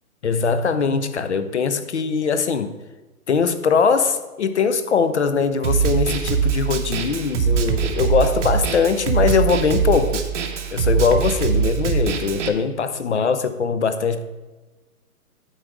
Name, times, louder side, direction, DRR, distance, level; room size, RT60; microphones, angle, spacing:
voice 1, 0.2-2.7 3.3-10.2 10.7-14.2, left 5 dB, 50° left, 11 dB, 0.5 m, -21 dB
Snare drum, 5.6-12.5, right 7 dB, 50° right, 0.8 m, -22 dB
10.0 x 3.9 x 4.7 m, 1.2 s
hypercardioid pair, 170°, 47 cm